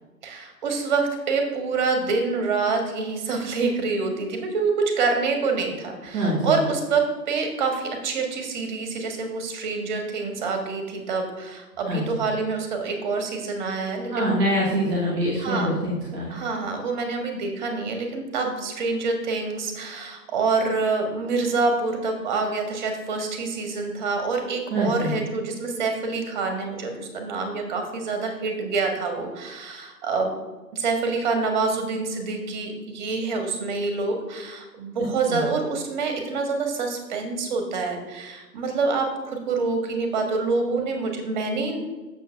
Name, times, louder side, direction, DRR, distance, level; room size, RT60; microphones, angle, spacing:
voice 1, 0.2-14.3 15.3-15.7 16.3-30.4 30.7-41.8, right 4 dB, 30° right, 4 dB, 1.4 m, -26 dB
voice 2, 6.1-6.6 11.9-12.0 14.1-16.4 24.7-25.1 35.3-35.4, equal, 5° right, -7 dB, 0.7 m, -24 dB
6.9 x 4.5 x 5.7 m, 1.2 s
figure-of-eight pair, 140°, 48 cm